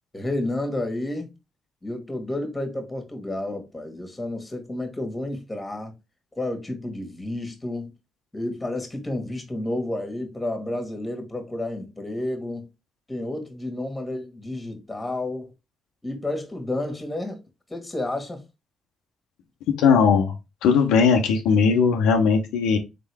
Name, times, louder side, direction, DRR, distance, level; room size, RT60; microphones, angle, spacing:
voice 1, 0.1-1.3 1.8-5.9 6.3-7.9 8.3-12.7 13.1-15.5 16.0-17.4 17.7-18.4, left 1 dB, 20° left, 1.5 m, -30 dB
voice 2, 19.8-20.3 20.6-22.8, left 5 dB, 90° left, 0.7 m, -18 dB
3.8 x 3.7 x 3.4 m
supercardioid pair, 65°, 0 cm